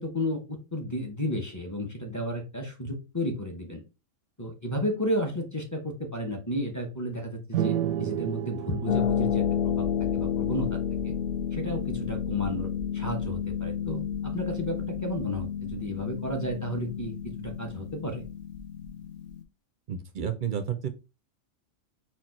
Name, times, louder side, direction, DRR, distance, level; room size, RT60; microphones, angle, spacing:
voice 1, 0.0-3.8 4.4-9.9 10.1-10.8 11.0-11.1 11.5-18.2, equal, 15° left, 1 dB, 0.7 m, -33 dB
sound 1, 7.5-11.1, right 10 dB, 85° right, 1.0 m, -32 dB
Harp, 8.9-19.4, left 8 dB, 55° left, 0.7 m, -31 dB
voice 2, 19.9-20.9, right 8 dB, 55° right, 8 dB, 0.6 m, -31 dB
4.4 x 2.4 x 4.3 m, 0.29 s
omnidirectional pair, 1.3 m